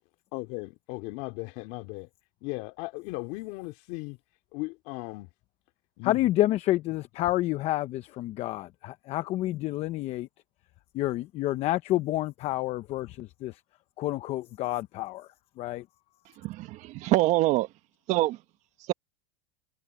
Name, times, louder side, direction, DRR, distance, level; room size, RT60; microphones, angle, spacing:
voice 1, 0.3-2.1 2.4-4.2 4.5-5.3 6.0-6.3, left 23 dB, 55° left, 3.0 m, -37 dB
voice 2, 6.0-10.3 10.9-13.6 14.0-15.3 15.6-15.8, left 15 dB, 40° left, 0.9 m, -29 dB
voice 3, 16.4-17.7 18.1-18.4, right 17 dB, 45° right, 1.3 m, -24 dB
supercardioid pair, 135°, 16 cm